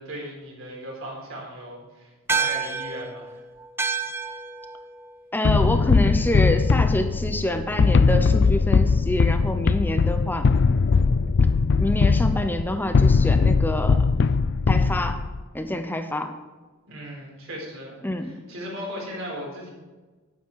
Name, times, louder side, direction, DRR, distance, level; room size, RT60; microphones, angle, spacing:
voice 1, 0.0-3.4 16.9-18.0 18.2-19.7, equal, 65° right, -2 dB, 4.1 m, -37 dB
sound 1, 2.3-7.0, right 5 dB, 10° right, 0.4 m, -31 dB
voice 2, 5.3-10.5 11.8-14.1 14.7-15.2 15.5-16.3 18.0-18.3, left 1 dB, 10° left, 7 dB, 0.8 m, -26 dB
sound 2, 5.4-15.4, left 4 dB, 55° left, 0.4 m, -20 dB
10.0 x 9.6 x 4.8 m, 1.3 s
head